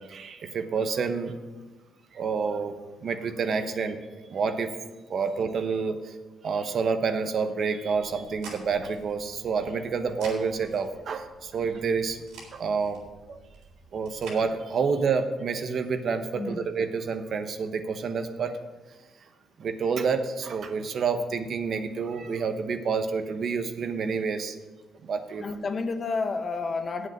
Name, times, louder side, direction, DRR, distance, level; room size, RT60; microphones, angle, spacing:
voice 1, 0.0-1.3 2.1-4.0 4.3-4.7 5.1-6.2 6.4-12.2 12.5-13.0 13.3-13.4 13.9-18.6 19.6-24.6 25.0-25.4, right 5 dB, 55° right, 8 dB, 1.0 m, -28 dB
sound 1, 7.9-14.4, right 3 dB, 90° right, 3.8 m, -48 dB
voice 2, 16.3-16.7 25.4-27.1, left 4 dB, 40° left, 8 dB, 1.0 m, -30 dB
8.3 x 7.8 x 7.8 m, 1.3 s
cardioid pair, 90°, 0 cm